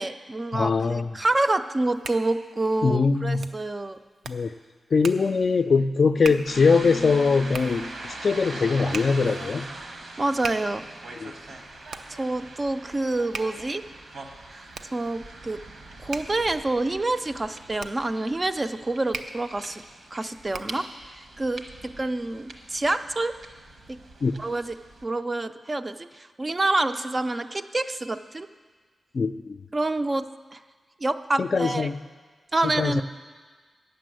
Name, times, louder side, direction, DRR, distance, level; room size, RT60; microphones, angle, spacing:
voice 1, 0.0-4.0 10.2-10.8 12.1-13.8 14.5-15.6 16.0-19.8 20.1-23.3 24.4-24.7 25.0-28.5 29.7-30.2 30.5-30.6 31.0-31.9 32.5-33.0, right 2 dB, 25° right, 10 dB, 0.4 m, -27 dB
voice 2, 0.5-1.1 2.8-3.5 4.3-4.6 4.9-9.7 11.2-11.3 24.2-24.3 29.1-29.6 31.4-32.0 32.6-33.0, left 4 dB, 50° left, 10 dB, 0.3 m, -22 dB
Hands, 1.6-20.9, right 4 dB, 85° right, 0.5 m, -42 dB
sound 1, 6.5-25.0, right 2 dB, 70° right, 1.1 m, -42 dB
9.3 x 6.9 x 7.6 m, 1.4 s
wide cardioid pair, 130°, 0 cm